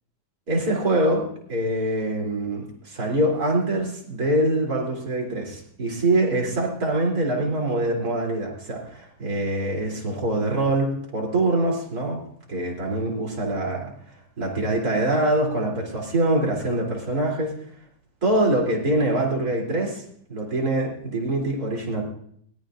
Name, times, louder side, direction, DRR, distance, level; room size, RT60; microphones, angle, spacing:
voice 1, 0.5-12.2 12.5-13.9 14.4-17.5 18.2-20.0 20.3-22.0, right 1 dB, 60° right, -2 dB, 3.8 m, -24 dB
23.0 x 18.0 x 2.5 m, 0.66 s
omnidirectional pair, 1.8 m